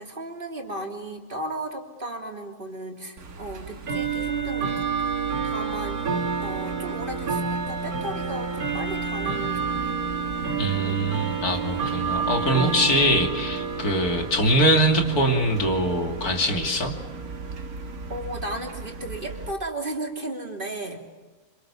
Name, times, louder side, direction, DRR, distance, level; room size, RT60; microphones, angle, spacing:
voice 1, 0.0-5.1 5.4-6.0 6.4-10.0 10.9-11.1 18.1-21.0, right 1 dB, 35° right, 1 dB, 3.4 m, -35 dB
Bell / Tick-tock, 3.2-19.5, right 5 dB, 80° right, 2.1 m, -30 dB
voice 2, 10.6-16.9, equal, 85° left, 3 dB, 3.3 m, -23 dB
28.5 x 26.0 x 7.2 m, 1.2 s
omnidirectional pair, 1.6 m